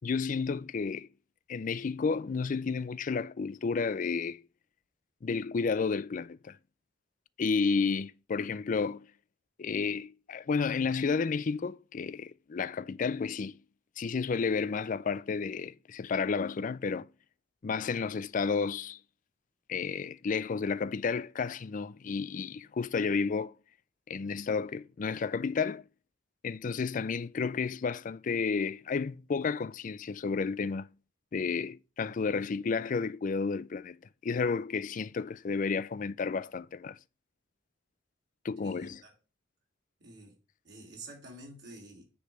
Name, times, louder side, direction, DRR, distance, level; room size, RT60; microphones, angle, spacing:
voice 1, 0.0-1.1 1.5-4.4 5.2-6.6 7.4-9.1 9.6-13.6 14.0-17.1 17.6-19.0 19.7-23.5 24.1-25.8 26.4-30.9 31.3-34.0 34.2-37.0 38.4-39.0, left 5 dB, 40° left, 0.4 m, -31 dB
voice 2, 38.6-39.1 40.0-40.3 40.6-42.0, right 2 dB, 60° right, 2.7 m, -48 dB
9.7 x 3.4 x 6.4 m
head